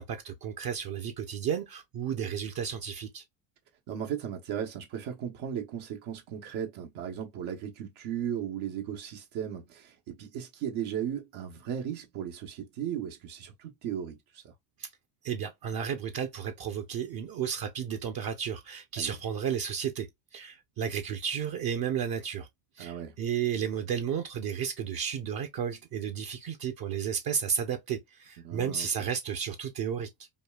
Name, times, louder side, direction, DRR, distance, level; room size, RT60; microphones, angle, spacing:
voice 1, 0.0-3.2 14.8-14.9 15.2-22.5 22.8-30.1, right 8 dB, 45° right, 0.7 m, -33 dB
voice 2, 3.9-14.4 19.0-19.1 22.8-23.1 28.4-28.9, right 9 dB, 70° right, 0.9 m, -36 dB
5.2 x 2.3 x 2.2 m
cardioid pair, 100°, 48 cm